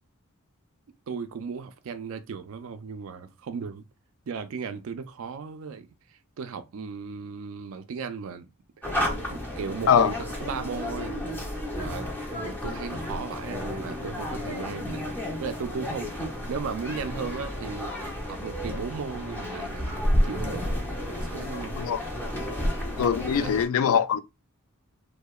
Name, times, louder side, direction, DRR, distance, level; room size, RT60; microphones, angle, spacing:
voice 1, 1.1-3.8 4.3-5.9 6.4-8.5 9.1-11.2 11.8-15.1 15.4-16.2 16.5-17.9 18.3-20.7 21.3-21.8 23.2-23.6, right 5 dB, 70° right, 0.4 m, -36 dB
sound 1, 8.8-23.7, equal, 10° left, 0.6 m, -31 dB
voice 2, 23.0-24.2, left 8 dB, 70° left, 0.3 m, -22 dB
2.7 x 2.1 x 2.2 m
head